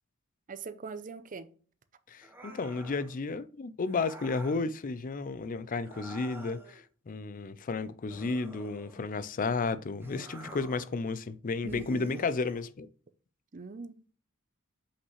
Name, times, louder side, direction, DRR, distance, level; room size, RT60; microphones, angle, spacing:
voice 1, 0.5-1.5 11.6-12.2 13.5-14.1, right 4 dB, 40° right, 0.6 m, -42 dB
voice 2, 2.1-12.9, left 4 dB, 40° left, 0.4 m, -33 dB
sound 1, 2.2-3.1 3.9-4.6 5.8-6.8 8.1-9.2 10.0-10.9 11.7-12.7, right 1 dB, 10° right, 1.0 m, -48 dB
5.8 x 5.4 x 3.1 m
head